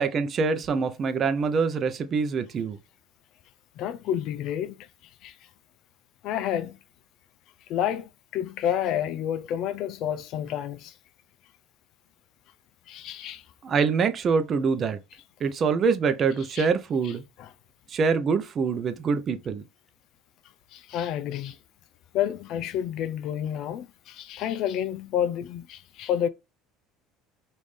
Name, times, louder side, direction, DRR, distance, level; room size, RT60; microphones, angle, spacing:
voice 1, 0.0-2.8 13.6-15.0 15.4-17.2 17.9-19.6, right 5 dB, 40° right, 0.6 m, -25 dB
voice 2, 3.8-4.9 5.2-5.4 6.2-6.8 7.7-10.9 12.9-13.4 16.5-16.7 17.0-17.5 20.7-21.6 22.1-26.3, left 10 dB, 60° left, 0.4 m, -30 dB
3.6 x 2.6 x 3.2 m
supercardioid pair, 100°, 0 cm